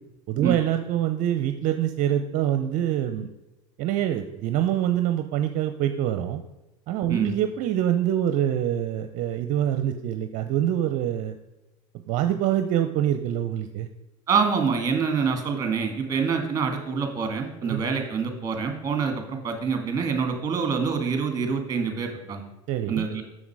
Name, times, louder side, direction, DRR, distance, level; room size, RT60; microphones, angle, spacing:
voice 1, 0.3-3.3 3.8-6.4 6.9-11.4 12.1-13.9 17.6-17.8 22.7-23.0, right 11 dB, 55° right, 8 dB, 0.6 m, -25 dB
voice 2, 14.3-22.4 22.9-23.2, right 5 dB, 25° right, 5 dB, 2.1 m, -26 dB
7.1 x 6.6 x 4.8 m, 1.0 s
supercardioid pair, 100°, 16 cm